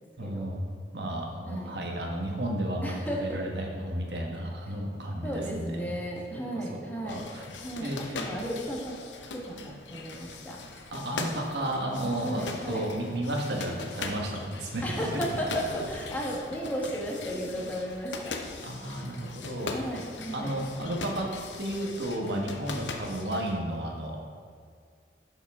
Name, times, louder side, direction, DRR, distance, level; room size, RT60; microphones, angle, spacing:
voice 1, 0.2-5.9 6.3-7.5 7.8-8.2 10.9-15.2 18.6-19.9 20.3-21.3 21.6-24.2, right 1 dB, 70° right, 1 dB, 1.2 m, -33 dB
voice 2, 1.5-1.8 2.8-3.4 5.2-7.2 7.6-9.0 9.3-10.6 12.2-12.9 14.8-18.4 19.7-20.5, equal, 10° left, -3 dB, 1.2 m, -34 dB
sound 1, 7.1-23.6, left 3 dB, 85° left, 0.7 m, -40 dB
10.5 x 5.4 x 3.6 m, 2.2 s
head